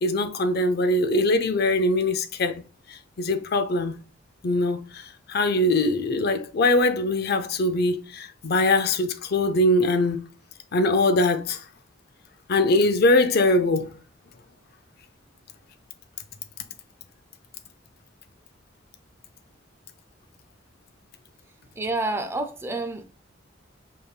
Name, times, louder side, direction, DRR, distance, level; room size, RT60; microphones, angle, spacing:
voice 1, 0.0-2.6 2.9-4.0 4.4-10.3 10.7-11.6 12.5-14.0, left 2 dB, 55° left, 0.5 m, -22 dB
voice 2, 21.7-23.0, right 2 dB, 15° right, 0.5 m, -28 dB
4.8 x 3.4 x 2.3 m
head